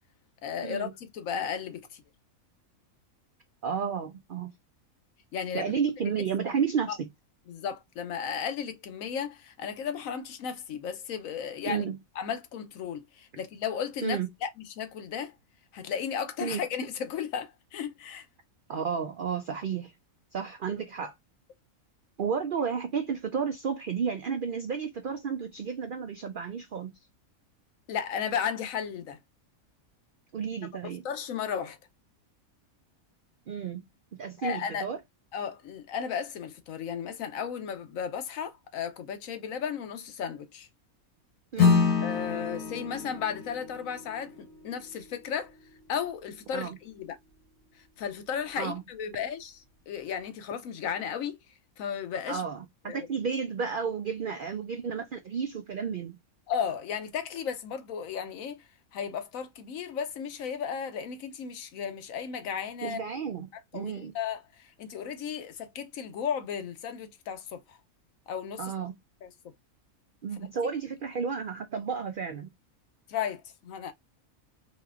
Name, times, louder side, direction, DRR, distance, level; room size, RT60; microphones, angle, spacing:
voice 1, 0.4-2.0 5.3-5.7 6.1-6.2 7.5-11.8 12.2-14.5 14.8-15.3 15.7-18.3 27.9-29.2 30.8-31.8 34.4-34.9 35.3-40.7 42.0-44.3 44.6-45.5 45.9-47.2 48.0-49.6 49.9-51.4 51.8-52.4 52.9-53.1 56.5-58.6 58.9-63.0 63.7-67.8 68.3-68.7 69.2-69.3 73.1-73.9, left 7 dB, 70° left, 1.0 m, -34 dB
voice 2, 3.6-4.5 5.5-7.0 11.7-12.0 14.0-14.3 16.4-16.6 18.7-19.9 20.3-21.1 22.2-26.9 30.3-31.0 33.5-33.8 34.1-35.0 41.5-41.8 46.5-46.8 48.6-48.8 52.3-56.2 62.8-64.1 68.6-68.9 70.2-72.5, right 6 dB, 75° right, 0.4 m, -32 dB
Acoustic guitar / Strum, 41.6-46.4, left 5 dB, 90° left, 2.1 m, -28 dB
4.0 x 3.0 x 2.4 m
omnidirectional pair, 1.5 m